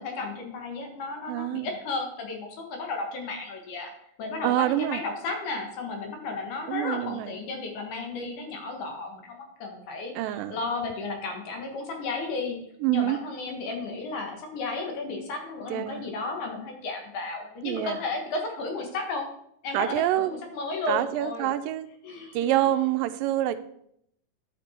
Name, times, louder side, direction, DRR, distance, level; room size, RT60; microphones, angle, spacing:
voice 1, 0.0-3.9 4.2-12.6 12.9-19.3 19.6-21.5 22.0-22.6, left 3 dB, 70° left, 3 dB, 2.9 m, -33 dB
voice 2, 1.3-1.7 4.4-5.0 6.7-7.3 10.2-10.6 12.8-13.2 15.7-16.0 17.6-18.0 19.7-20.3 20.9-21.9 22.3-23.6, right 13 dB, 90° right, 12 dB, 2.3 m, -26 dB
9.6 x 6.8 x 4.3 m, 0.71 s
omnidirectional pair, 3.9 m